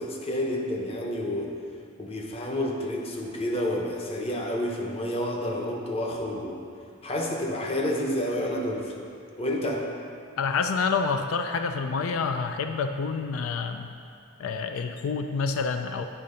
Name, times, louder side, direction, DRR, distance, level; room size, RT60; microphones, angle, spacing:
voice 1, 0.0-1.6 2.0-6.6 7.0-8.9 9.4-9.9, left 1 dB, 30° left, 0 dB, 0.7 m, -29 dB
voice 2, 10.4-13.9 14.4-16.1, left 5 dB, 85° left, 7 dB, 0.4 m, -28 dB
9.0 x 3.8 x 5.4 m, 2.5 s
head